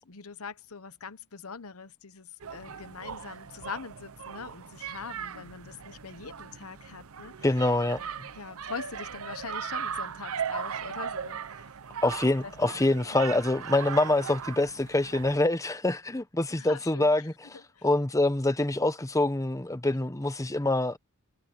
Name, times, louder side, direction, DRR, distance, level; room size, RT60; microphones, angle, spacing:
voice 1, 0.0-7.3 7.9-11.6 12.0-12.1 12.4-12.9 16.5-17.1 17.7-17.8, left 5 dB, 75° left, 1.1 m, -42 dB
sound 1, 2.4-15.4, right 7 dB, 70° right, 0.8 m, -38 dB
voice 2, 7.4-8.3 12.0-17.3 17.8-21.0, left 2 dB, 15° left, 0.9 m, -25 dB
head